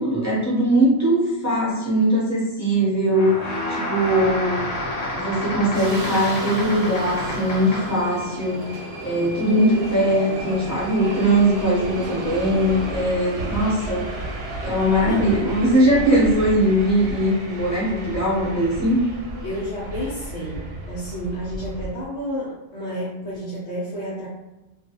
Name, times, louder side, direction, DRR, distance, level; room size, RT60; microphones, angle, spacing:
voice 1, 0.0-3.4 3.7-4.7 5.1-8.7 9.0-14.1 14.6-19.0, right 1 dB, 15° left, -8 dB, 0.9 m, -20 dB
sound 1, 3.1-8.1, left 1 dB, 50° left, 0.5 m, -29 dB
Subway metro underground, 4.0-21.9, right 1 dB, 65° right, 0.8 m, -33 dB
voice 2, 9.5-10.0 12.0-12.4 15.0-16.0 19.4-24.3, equal, 90° left, -8 dB, 1.1 m, -31 dB
2.3 x 2.3 x 2.8 m, 1.0 s
omnidirectional pair, 1.3 m